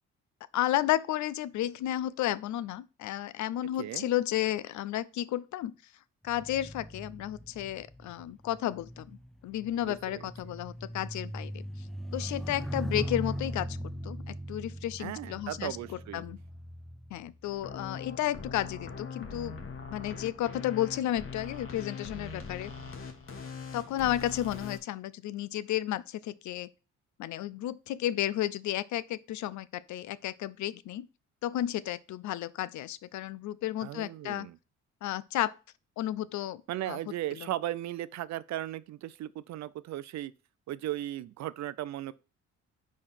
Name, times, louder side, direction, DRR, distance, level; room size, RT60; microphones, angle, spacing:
voice 1, 0.5-5.7 6.2-9.1 9.4-11.6 12.1-13.8 14.0-16.4 17.1-19.5 19.9-22.7 23.7-26.7 27.2-31.1 31.4-34.5 35.0-35.5 36.0-36.6 36.9-37.0, left 13 dB, 70° left, 0.5 m, -32 dB
sound 1, 6.3-17.9 18.6-18.9, equal, ahead, 0.5 m, -40 dB
voice 2, 9.9-10.3 15.0-16.2 33.8-34.6 36.7-40.3 40.7-42.1, right 13 dB, 65° right, 0.5 m, -36 dB
sound 2, 17.4-24.8, left 5 dB, 45° left, 1.3 m, -42 dB
5.0 x 4.2 x 5.6 m
cardioid pair, 90°, 30 cm